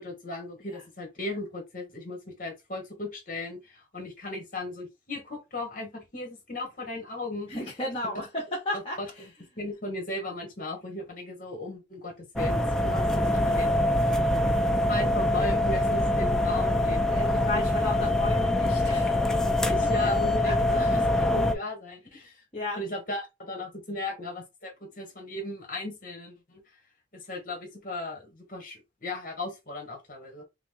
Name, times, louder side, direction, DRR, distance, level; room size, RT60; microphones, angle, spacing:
voice 1, 0.0-7.5 9.0-9.1 9.6-13.7 14.8-17.0 17.5-17.6 18.0-18.1 19.2-22.4 22.8-26.6 27.1-30.4, left 2 dB, 50° left, 1.9 m, -36 dB
voice 2, 7.5-9.3 17.0-19.3 20.4-20.5 22.5-22.8, left 1 dB, 30° left, 1.8 m, -34 dB
sound 1, 12.4-21.5, left 1 dB, 5° left, 0.6 m, -24 dB
5.8 x 2.4 x 3.8 m
head